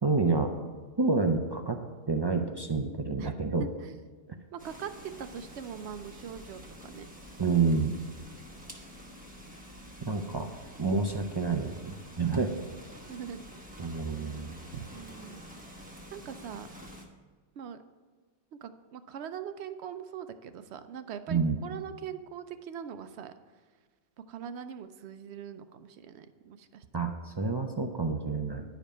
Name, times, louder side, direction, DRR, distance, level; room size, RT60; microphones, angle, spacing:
voice 1, 0.0-0.5 1.0-1.8 2.1-3.7 7.4-8.0 10.1-10.5 10.8-12.5 13.8-14.5 21.3-21.6 26.9-28.6, right 4 dB, 45° right, 4 dB, 0.3 m, -28 dB
voice 2, 3.6-4.0 4.5-7.1 13.1-13.7 14.9-15.4 16.1-16.7 17.6-17.8 18.6-23.3 24.3-26.9, right 8 dB, 75° right, 10 dB, 0.8 m, -42 dB
sound 1, 4.6-17.1, equal, 10° right, 0.9 m, -48 dB
10.5 x 5.1 x 5.5 m, 1.5 s
omnidirectional pair, 1.1 m